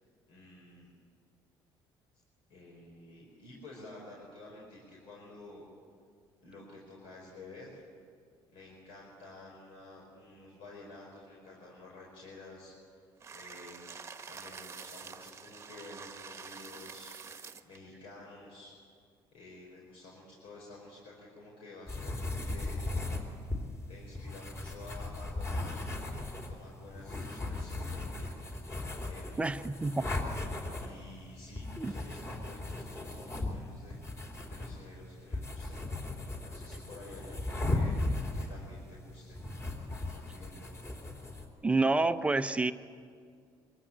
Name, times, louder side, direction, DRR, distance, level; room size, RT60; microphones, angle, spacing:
voice 1, 0.3-0.9 2.5-5.6 6.4-7.8 8.5-13.0 13.3-13.8 14.3-17.1 17.6-18.7 19.3-22.8 23.9-25.9 26.5-28.3 28.6-29.6 30.8-35.8 36.4-39.4 40.0-40.8, left 2 dB, 75° left, -3 dB, 5.3 m, -51 dB
sound 1, 13.2-17.8, right 5 dB, 30° right, 1.2 m, -47 dB
sound 2, 21.9-41.4, left 2 dB, 30° left, 3.5 m, -37 dB
voice 2, 29.4-30.1 31.8-31.9 41.6-42.7, right 3 dB, 15° right, 10 dB, 0.7 m, -28 dB
24.0 x 15.0 x 8.8 m, 2.1 s
cardioid pair, 120°, 9 cm